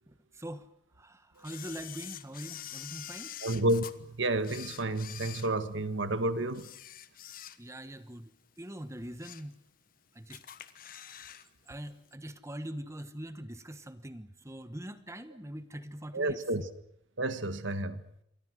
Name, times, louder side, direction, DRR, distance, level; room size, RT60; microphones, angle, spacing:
voice 1, 0.1-0.7 0.9-3.4 7.6-8.3 8.6-9.6 10.1-10.4 11.0-11.2 11.7-16.4, right 1 dB, 15° right, 1.2 m, -43 dB
Camera, 1.4-3.9 4.4-6.1 6.5-7.9 8.3-8.4 8.9-9.5 9.9-10.0 10.3-11.5 11.7-11.8, left 10 dB, 50° left, 1.3 m, -46 dB
voice 2, 3.4-6.7 16.1-16.7 17.2-18.0, right 1 dB, 85° right, 1.7 m, -30 dB
27.5 x 23.5 x 6.4 m
head